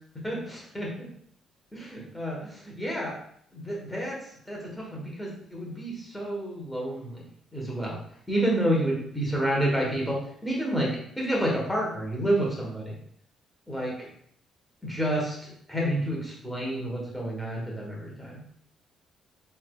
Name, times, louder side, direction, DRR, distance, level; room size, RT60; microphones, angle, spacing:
voice 1, 0.2-1.1 1.7-3.1 3.5-4.2 4.5-7.2 7.5-8.0 8.3-13.0 13.7-14.0 14.8-18.4, right 1 dB, 5° left, -3 dB, 1.1 m, -29 dB
5.2 x 3.3 x 2.2 m, 0.66 s
cardioid pair, 170°, 0 cm